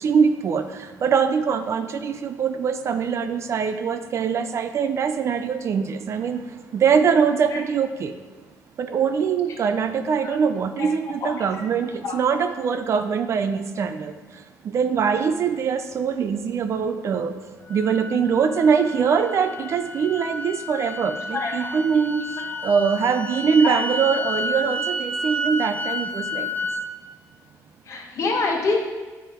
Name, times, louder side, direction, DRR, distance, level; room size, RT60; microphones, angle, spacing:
voice 1, 0.0-0.6 1.0-6.4 6.7-8.1 8.8-14.1 14.7-17.3 17.7-22.2 22.6-26.5, right 6 dB, 45° right, 9 dB, 0.4 m, -22 dB
voice 2, 10.8-11.4 12.0-12.2 21.3-21.7 22.4-22.7 23.6-23.8 27.9-28.8, left 4 dB, 50° left, 0 dB, 1.2 m, -27 dB
sound 1, 17.7-26.8, equal, 25° left, 0.5 m, -31 dB
9.1 x 3.5 x 4.3 m, 1.3 s
cardioid pair, 135°, 7 cm